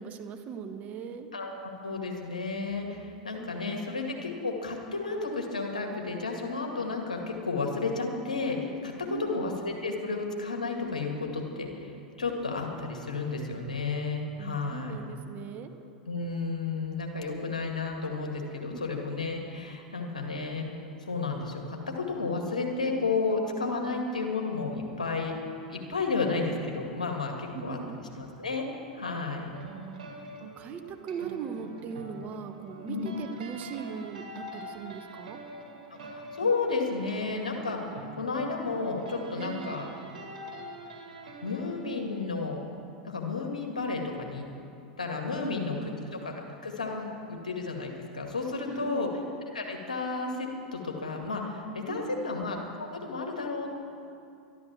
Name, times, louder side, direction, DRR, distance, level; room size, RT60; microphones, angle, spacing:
voice 1, 0.0-1.3 3.4-4.0 9.1-9.5 14.4-15.7 18.6-18.8 23.8-24.0 27.5-28.0 29.7-30.1 30.6-35.4 39.4-39.8 45.4-46.0 48.6-49.1 51.9-52.4, right 7 dB, 40° right, 7 dB, 1.3 m, -40 dB
voice 2, 1.3-11.8 12.2-15.0 16.1-20.7 21.0-25.3 25.7-27.8 28.2-28.6 28.9-29.6 32.9-33.1 36.0-37.8 38.2-39.9 41.4-42.6 43.0-44.5 45.0-45.9 46.2-46.3 46.6-49.1 49.5-53.7, left 4 dB, 90° left, 1 dB, 2.0 m, -32 dB
sound 1, 29.5-42.7, right 2 dB, 75° right, 2.2 m, -45 dB
12.5 x 12.0 x 7.4 m, 2.6 s
hypercardioid pair, 90°, 4 cm